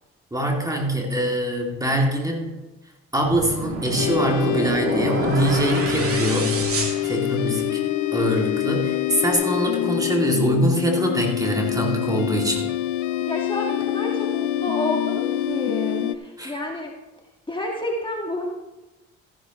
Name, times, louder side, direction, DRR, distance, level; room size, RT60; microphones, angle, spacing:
voice 1, 0.3-2.6 3.1-6.6 7.0-7.8 8.1-12.7 16.4-16.6, right 1 dB, 10° right, 0 dB, 2.3 m, -23 dB
sound 1, 3.2-7.8, right 2 dB, 50° right, 2.6 m, -28 dB
sound 2, 4.0-16.2, left 13 dB, 80° left, 0.6 m, -25 dB
voice 2, 13.2-16.9 17.5-18.5, left 1 dB, 15° left, -1 dB, 1.6 m, -29 dB
14.0 x 11.0 x 3.0 m, 1.1 s
cardioid pair, 90°, 30 cm